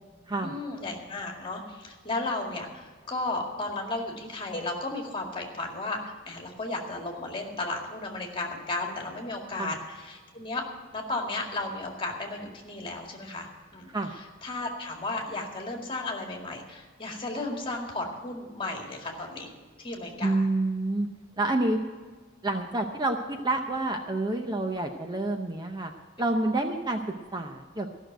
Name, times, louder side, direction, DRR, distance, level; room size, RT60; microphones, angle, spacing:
voice 1, 0.4-10.6 10.9-19.5 19.8-20.4, left 2 dB, 25° left, 1 dB, 2.1 m, -34 dB
voice 2, 20.2-21.1 21.4-21.8 22.4-25.9 26.2-27.0 27.3-27.9, right 2 dB, 20° right, 4 dB, 0.7 m, -28 dB
14.0 x 6.4 x 9.1 m, 1.4 s
head